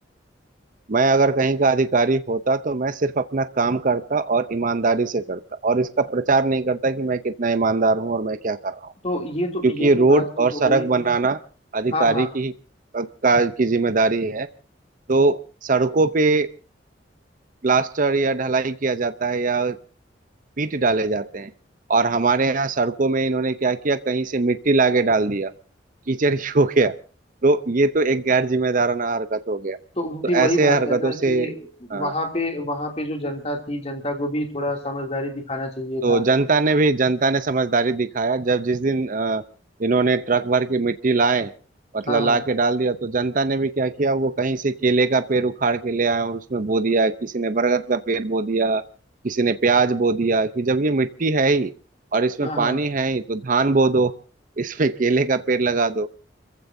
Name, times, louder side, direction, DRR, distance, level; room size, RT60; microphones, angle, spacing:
voice 1, 0.9-8.9 9.6-11.4 11.7-12.5 12.9-14.5 15.1-16.5 17.6-19.8 20.6-21.5 21.9-25.5 26.1-26.9 27.4-29.8 30.3-31.5 31.9-32.1 36.0-39.4 39.8-41.5 41.9-48.8 49.2-51.7 52.1-54.1 54.6-56.1, right 3 dB, 45° right, 12 dB, 0.7 m, -21 dB
voice 2, 9.0-11.0 11.8-12.3 30.0-36.2 42.1-42.4 52.4-52.8, left 1 dB, 35° left, 3 dB, 2.7 m, -27 dB
29.5 x 15.0 x 2.7 m, 0.36 s
head